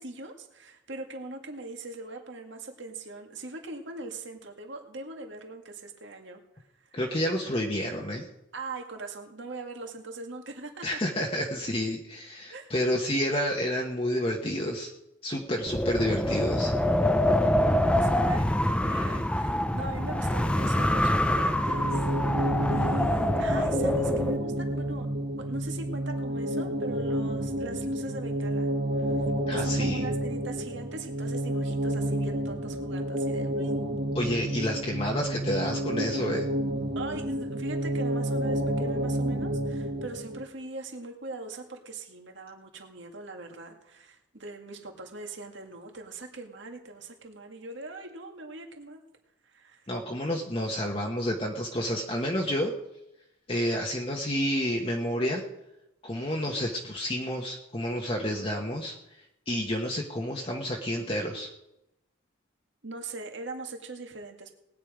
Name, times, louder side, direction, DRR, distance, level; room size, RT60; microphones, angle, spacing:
voice 1, 0.0-6.4 6.9-7.0 8.5-11.0 12.5-12.7 18.0-22.0 22.7-25.1 25.4-28.7 29.0-33.7 37.0-49.0 49.4-49.9 62.8-64.5, right 3 dB, 70° right, 3 dB, 2.0 m, -41 dB
voice 2, 6.9-8.3 10.8-14.9 15.2-16.7 29.5-30.0 34.1-36.5 49.9-52.7 53.5-55.4 56.0-58.9 59.5-61.5, equal, 30° left, 0 dB, 1.2 m, -29 dB
Wind, 15.7-24.4, left 1 dB, 5° left, 0.6 m, -25 dB
sound 1, 21.6-40.4, right 1 dB, 50° right, 1.3 m, -30 dB
19.0 x 9.7 x 5.0 m, 0.87 s
head